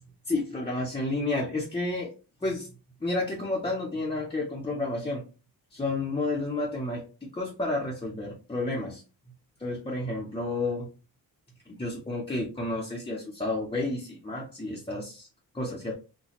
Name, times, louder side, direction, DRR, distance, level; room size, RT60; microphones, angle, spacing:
voice 1, 0.3-2.1 2.4-2.7 3.0-5.2 5.7-9.0 9.6-10.9 11.7-15.3 15.5-15.9, left 2 dB, 15° left, -4 dB, 0.6 m, -31 dB
4.0 x 2.2 x 2.9 m, 0.32 s
wide cardioid pair, 170°, 37 cm